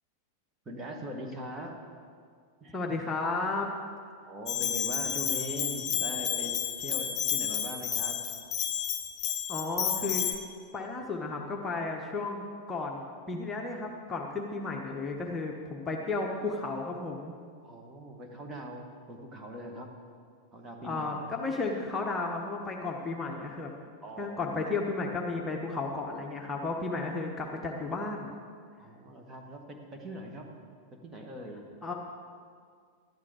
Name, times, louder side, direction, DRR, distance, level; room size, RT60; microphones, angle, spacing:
voice 1, 0.7-1.8 2.6-2.8 4.2-8.2 17.6-19.9 20.5-21.2 24.0-24.5 28.8-30.5 31.0-31.6, equal, 20° right, 2 dB, 1.7 m, -41 dB
voice 2, 2.7-3.7 9.5-10.3 10.7-17.3 20.8-23.7 24.2-28.3 31.8-31.9, left 3 dB, 15° left, 0 dB, 1.2 m, -33 dB
Bell, 4.5-10.3, left 9 dB, 30° left, 1.2 m, -31 dB
12.5 x 11.0 x 5.0 m, 2.1 s
figure-of-eight pair, 90°, 0 cm